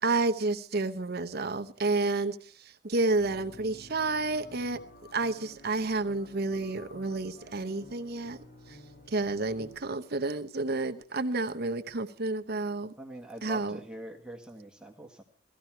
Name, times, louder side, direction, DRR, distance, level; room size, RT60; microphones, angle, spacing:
voice 1, 0.0-4.8 5.1-8.4 8.7-8.8 9.1-12.9 13.4-13.8, right 3 dB, 50° right, 9 dB, 0.9 m, -30 dB
sound 1, 3.2-9.8, left 1 dB, 45° left, 2.7 m, -52 dB
voice 2, 9.3-9.6 13.0-15.2, right 1 dB, 5° right, 2 dB, 1.5 m, -44 dB
17.0 x 14.0 x 4.4 m, 0.43 s
head